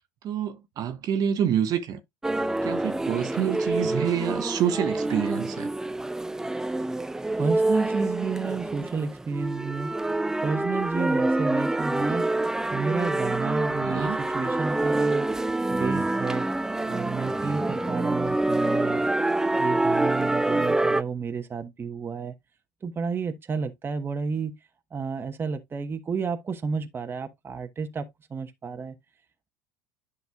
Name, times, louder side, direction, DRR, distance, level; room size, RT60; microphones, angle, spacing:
voice 1, 0.2-2.0 2.6-5.7 13.8-14.2, right 9 dB, 45° right, 1.0 m, -27 dB
sound 1, 2.2-21.0, right 2 dB, 5° right, 0.4 m, -26 dB
voice 2, 7.4-9.9 10.4-12.3 12.7-15.3 15.7-16.5 16.8-19.1 19.5-22.3 22.8-24.5 24.9-28.9, right 5 dB, 25° right, 1.0 m, -31 dB
10.5 x 5.4 x 2.3 m
hypercardioid pair, 75°, 9 cm